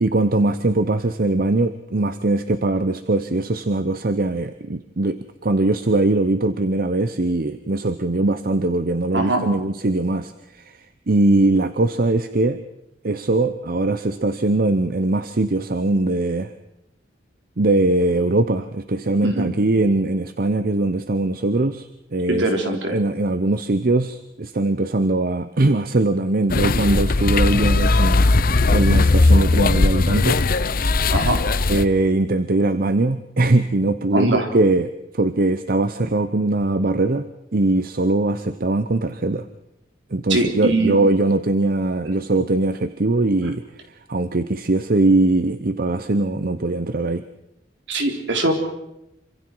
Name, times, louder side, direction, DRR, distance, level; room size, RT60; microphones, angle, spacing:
voice 1, 0.0-12.6 13.0-16.5 17.6-22.5 22.9-28.3 28.7-30.4 31.7-37.3 37.5-39.5 40.1-43.6 44.1-47.2, right 2 dB, 50° right, 11 dB, 0.8 m, -21 dB
voice 2, 9.1-9.5 19.2-19.5 22.3-23.0 31.1-31.4 34.1-34.5 40.3-41.0 47.9-48.5, right 2 dB, 70° right, 3 dB, 3.8 m, -22 dB
sound 1, 26.5-31.8, left 3 dB, 50° left, 0.8 m, -18 dB
27.0 x 25.5 x 4.7 m, 0.87 s
head